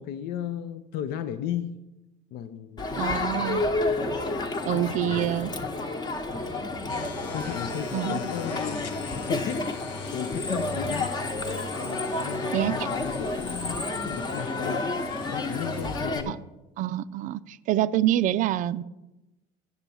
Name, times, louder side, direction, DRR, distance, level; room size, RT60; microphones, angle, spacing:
voice 1, 0.0-1.8 2.3-2.9 4.7-5.3 7.3-8.9 9.2-9.7 10.1-11.2 11.8-15.0 15.3-16.4, left 10 dB, 60° left, 11 dB, 0.6 m, -35 dB
Crowd, 2.8-16.2, left 2 dB, 25° left, 1.0 m, -30 dB
voice 2, 3.0-3.6 4.7-5.5 7.9-8.2 12.5-12.8 16.3-16.4 16.8-18.8, right 12 dB, 50° right, 16 dB, 0.4 m, -26 dB
sound 1, 6.9-16.0, left 6 dB, 85° left, 1.3 m, -44 dB
8.0 x 7.3 x 6.9 m, 1.0 s
cardioid pair, 125°, 18 cm